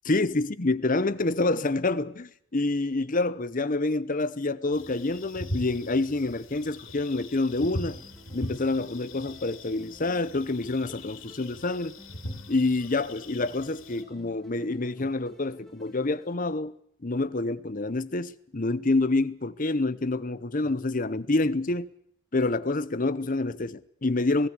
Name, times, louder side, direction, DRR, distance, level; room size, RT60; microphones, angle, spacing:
voice 1, 0.1-8.0 8.3-12.0 12.5-16.7 17.0-21.9 22.3-24.5, left 2 dB, 35° left, 0.8 m, -27 dB
sound 1, 4.7-14.0, left 1 dB, 60° left, 3.3 m, -40 dB
sound 2, 7.6-16.3, left 1 dB, ahead, 2.9 m, -53 dB
19.5 x 18.0 x 8.3 m
head